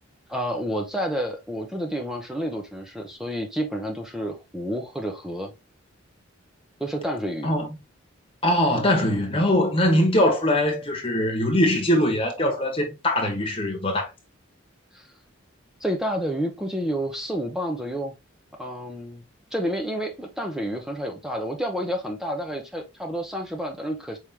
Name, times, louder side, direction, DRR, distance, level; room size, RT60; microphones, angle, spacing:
voice 1, 0.3-5.5 6.8-7.5 14.9-15.1 15.8-18.1 18.6-19.2 19.5-24.2, equal, ahead, 0.7 m, -29 dB
voice 2, 7.4-7.7 8.4-14.1, left 1 dB, 25° left, 1.3 m, -22 dB
4.8 x 3.6 x 2.8 m
head